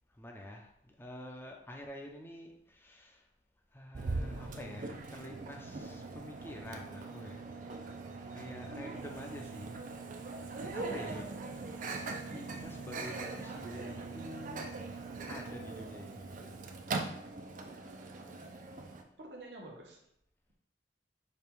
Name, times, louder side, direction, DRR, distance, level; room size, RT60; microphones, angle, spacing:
voice 1, 0.1-3.3 3.7-8.0 8.3-9.8 10.1-11.3 12.3-14.9 15.3-16.6, left 1 dB, 15° left, 1 dB, 0.6 m, -48 dB
Microwave oven, 3.9-19.0, right 3 dB, 45° right, 0.5 m, -41 dB
voice 2, 10.8-11.4 19.2-20.0, right 1 dB, 70° right, 0 dB, 1.0 m, -49 dB
5.1 x 2.3 x 4.5 m, 0.76 s
head